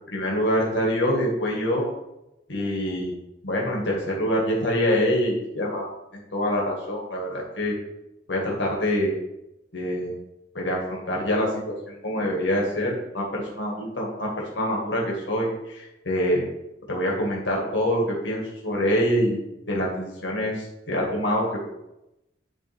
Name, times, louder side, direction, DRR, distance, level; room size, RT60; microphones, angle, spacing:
voice 1, 0.1-1.9 2.5-3.1 3.4-5.9 6.3-7.8 8.3-9.1 9.7-10.2 10.5-16.5 16.9-19.4 19.7-21.5, equal, 90° left, -2 dB, 2.0 m, -25 dB
10.5 x 3.5 x 3.6 m, 0.89 s
head